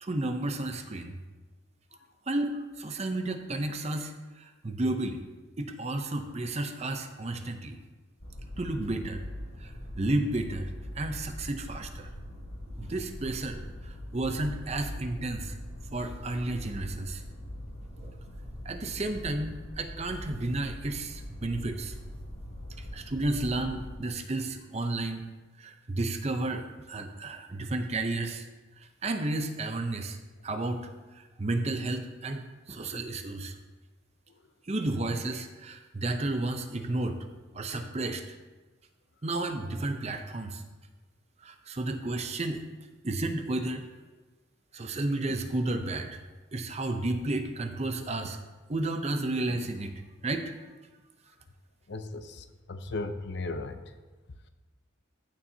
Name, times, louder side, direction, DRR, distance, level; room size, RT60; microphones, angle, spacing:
voice 1, 0.0-1.2 2.3-5.2 5.6-7.8 8.6-9.2 9.6-12.1 12.8-15.6 15.9-17.2 18.0-18.1 18.6-21.9 22.8-25.3 25.6-28.5 28.8-30.2 30.4-30.8 31.1-33.5 34.7-37.2 37.5-38.4 39.2-40.6 41.4-42.6 43.0-43.8 44.7-46.2 46.5-48.4 48.7-50.5, right 2 dB, 30° right, 7 dB, 0.6 m, -32 dB
sound 1, 8.2-24.0, left 1 dB, 80° left, 2.3 m, -42 dB
voice 2, 51.9-53.8, left 2 dB, 55° left, 9 dB, 0.6 m, -36 dB
14.5 x 7.0 x 2.8 m, 1.3 s
head